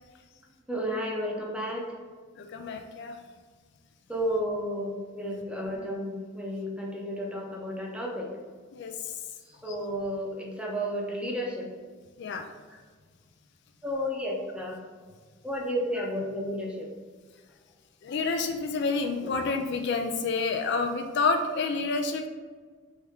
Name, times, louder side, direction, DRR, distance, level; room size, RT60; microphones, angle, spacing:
voice 1, 0.7-1.9 4.1-8.3 9.6-11.7 13.8-14.8 15.4-16.9, equal, 5° right, -1 dB, 0.6 m, -32 dB
voice 2, 2.4-3.2 8.7-9.1 9.7-9.8 12.2-12.5 16.0-16.1 18.0-22.3, left 4 dB, 55° left, 6 dB, 0.4 m, -29 dB
4.5 x 3.3 x 3.5 m, 1.5 s
head